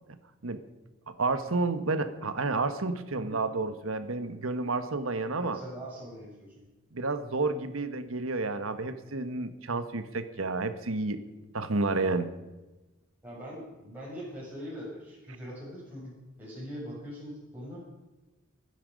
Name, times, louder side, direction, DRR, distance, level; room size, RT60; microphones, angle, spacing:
voice 1, 1.1-5.6 6.9-11.2 11.5-12.3, right 3 dB, 85° right, 10 dB, 1.3 m, -30 dB
voice 2, 5.4-6.6 13.2-17.8, equal, 10° right, -8 dB, 6.4 m, -42 dB
24.0 x 10.0 x 5.3 m, 1.1 s
head